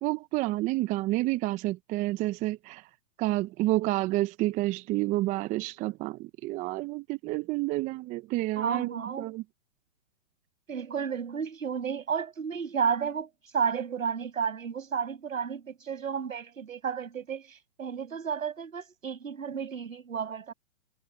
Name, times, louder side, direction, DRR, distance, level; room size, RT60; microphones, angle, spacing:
voice 1, 0.0-2.8 3.2-9.4, right 18 dB, 20° right, 0.8 m, -29 dB
voice 2, 8.6-9.3 10.7-20.5, right 6 dB, 80° right, 6.3 m, -32 dB
hypercardioid pair, 130°, 40 cm